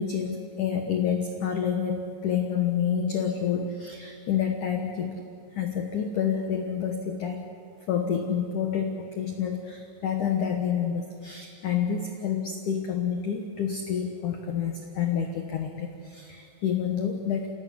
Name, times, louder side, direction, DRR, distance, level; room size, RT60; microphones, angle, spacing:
voice 1, 0.0-5.2 5.5-7.5 7.9-17.6, left 7 dB, 85° left, 4 dB, 1.7 m, -28 dB
28.0 x 17.5 x 9.8 m, 2.5 s
omnidirectional pair, 5.9 m